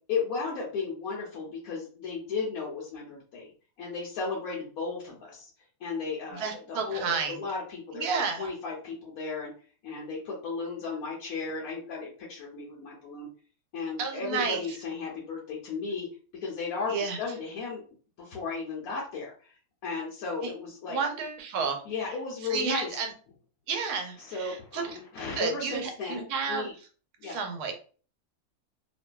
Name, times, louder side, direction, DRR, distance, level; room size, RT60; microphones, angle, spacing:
voice 1, 0.1-3.5 3.8-5.5 5.8-9.5 9.8-13.3 13.7-16.1 16.4-17.8 18.2-19.5 19.8-21.0 21.9-22.9 24.2-26.7 27.2-27.4, left 4 dB, 70° left, -4 dB, 1.1 m, -35 dB
voice 2, 6.3-7.4 7.9-8.5 14.0-14.7 16.9-17.2 20.4-20.5 20.9-21.8 22.5-23.1 23.7-24.8 25.4-26.7 27.2-27.7, right 5 dB, 80° right, 5 dB, 1.1 m, -31 dB
2.6 x 2.5 x 2.2 m, 0.40 s
omnidirectional pair, 1.6 m